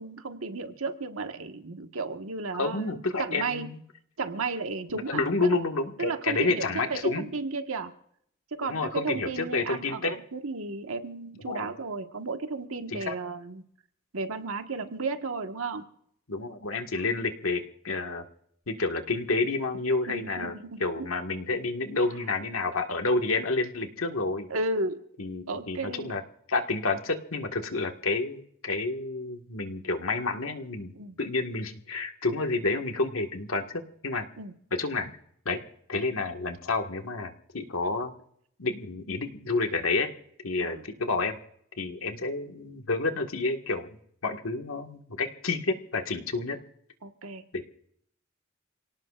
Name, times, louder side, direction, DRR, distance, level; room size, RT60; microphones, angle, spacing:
voice 1, 0.0-3.7 4.2-5.6 6.0-7.9 8.5-13.6 14.1-15.8 20.1-21.1 24.5-25.0 25.5-26.1 30.9-31.1 34.4-34.5 40.6-40.8 47.0-47.4, right 3 dB, 90° right, 6 dB, 1.5 m, -34 dB
voice 2, 2.5-3.8 4.9-7.3 8.7-10.2 11.4-11.7 12.9-13.1 16.3-18.2 18.7-20.5 20.8-24.5 25.2-26.2 26.5-30.9 31.2-34.3 34.8-35.1 35.4-35.6 35.9-38.1 38.6-40.1 40.4-41.4 41.8-43.9 44.2-46.6 47.5-47.6, left 3 dB, 85° left, 4 dB, 1.7 m, -29 dB
28.0 x 18.0 x 2.5 m, 0.69 s
head